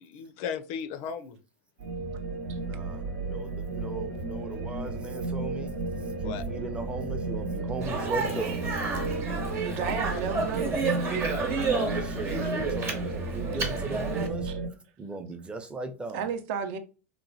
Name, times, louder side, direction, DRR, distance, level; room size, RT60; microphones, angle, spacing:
voice 1, 0.0-1.4 6.2-6.4 9.8-10.4 16.6-16.7, left 7 dB, 60° left, 0.4 m, -36 dB
sound 1, 1.8-14.7, right 2 dB, 80° right, 0.9 m, -33 dB
voice 2, 2.6-5.7 6.2-8.7 11.6-14.5 15.0-16.3, right 2 dB, 15° right, 0.5 m, -38 dB
Speech, 7.8-14.3, right 4 dB, 30° right, 0.9 m, -31 dB
voice 3, 9.6-10.8 14.4-14.5 16.1-16.8, right 7 dB, 60° right, 0.6 m, -32 dB
3.0 x 2.2 x 2.6 m
hypercardioid pair, 110°, 8 cm